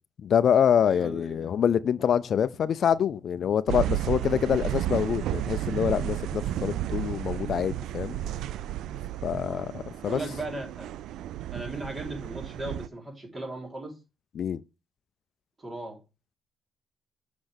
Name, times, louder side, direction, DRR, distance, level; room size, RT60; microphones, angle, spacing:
voice 1, 0.2-8.2 9.2-10.2 14.4-14.6, left 8 dB, 60° left, 0.4 m, -25 dB
voice 2, 0.8-1.5 4.2-4.4 9.4-9.7 10.0-10.9 11.5-14.0 15.6-16.0, right 2 dB, 25° right, 3.6 m, -37 dB
sound 1, 3.7-12.9, right 13 dB, 80° right, 0.3 m, -32 dB
7.7 x 5.9 x 3.4 m
cardioid pair, 90°, 0 cm